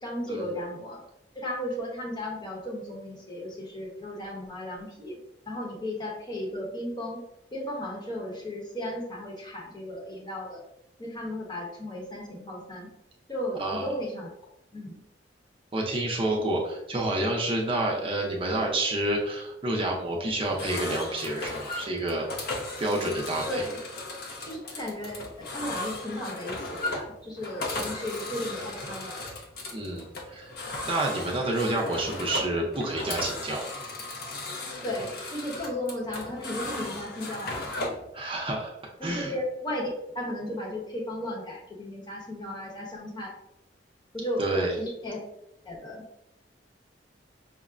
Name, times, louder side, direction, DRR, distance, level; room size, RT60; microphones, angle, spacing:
voice 1, 0.0-1.0 1.3-5.2 5.5-7.2 7.5-10.6 11.0-12.9 13.3-14.3 14.7-15.0 23.5-23.8 24.5-29.2 34.8-37.7 39.0-39.9 40.1-43.4 44.1-44.5 44.8-45.2 45.6-46.0, left 1 dB, 25° left, -2 dB, 0.9 m, -35 dB
voice 2, 13.5-13.9 15.7-22.3 22.8-23.6 29.7-30.5 30.9-33.7 38.1-38.7 39.0-39.3 44.4-44.8, right 1 dB, 30° right, -1 dB, 0.5 m, -29 dB
sound 1, 20.4-38.1, left 2 dB, 60° left, 0.7 m, -36 dB
5.6 x 2.1 x 2.4 m, 0.83 s
head